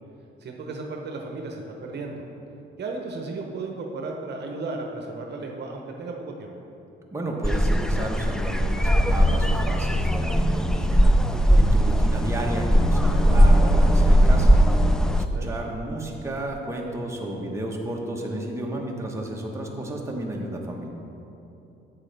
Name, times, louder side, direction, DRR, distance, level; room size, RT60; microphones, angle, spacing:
voice 1, 0.4-2.2 2.8-6.5 15.3-15.5, right 3 dB, 60° right, 1 dB, 0.9 m, -34 dB
voice 2, 7.1-11.2 11.5-14.8 15.1-20.9, right 1 dB, 15° right, -1 dB, 1.2 m, -32 dB
sound 1, 7.4-15.2, equal, 5° left, 0.3 m, -19 dB
9.6 x 7.4 x 3.4 m, 2.9 s
cardioid pair, 90°, 20 cm